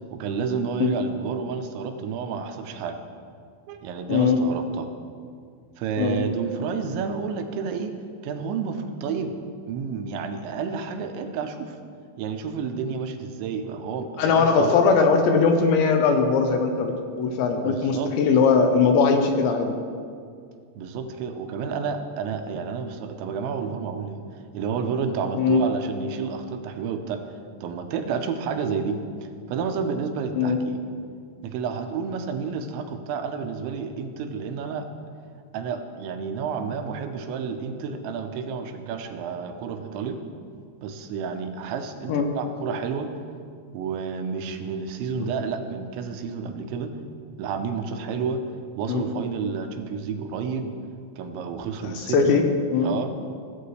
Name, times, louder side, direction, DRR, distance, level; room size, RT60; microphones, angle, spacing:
voice 1, 0.1-3.0 3.7-4.9 5.8-8.0 8.2-9.3 9.7-11.8 12.2-14.8 17.6-18.1 20.8-24.2 24.5-27.2 27.6-29.0 29.5-30.8 31.4-34.9 35.5-40.2 40.8-43.1 43.7-46.9 47.4-48.4 48.7-50.7 51.2-52.4 52.8-53.1, right 6 dB, 80° right, 6 dB, 3.0 m, -30 dB
voice 2, 14.2-19.8 25.4-25.6 30.4-30.6 42.1-42.2 45.2-45.3 48.9-49.0 51.8-52.4 52.7-52.9, left 5 dB, 85° left, 5 dB, 3.0 m, -20 dB
17.0 x 8.4 x 3.3 m, 2.2 s
omnidirectional pair, 5.3 m